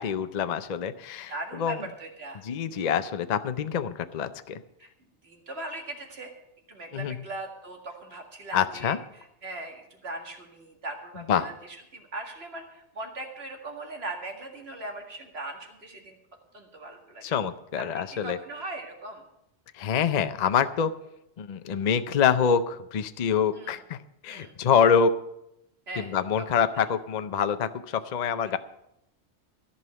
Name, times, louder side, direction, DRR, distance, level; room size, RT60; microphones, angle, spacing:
voice 1, 0.0-1.8 2.4-4.6 6.9-7.2 8.5-9.0 11.3-11.5 17.2-18.4 19.7-20.9 21.4-25.1 26.0-28.6, left 7 dB, 45° left, 11 dB, 0.6 m, -26 dB
voice 2, 1.3-2.4 2.7-2.9 4.8-4.9 5.2-6.3 6.7-16.2 16.5-17.4 17.9-19.2 21.7-21.9 23.5-23.8 24.3-24.5 25.9-26.2 26.7-26.9, right 2 dB, 60° right, 3 dB, 2.2 m, -39 dB
14.0 x 5.6 x 9.5 m, 0.83 s
omnidirectional pair, 1.2 m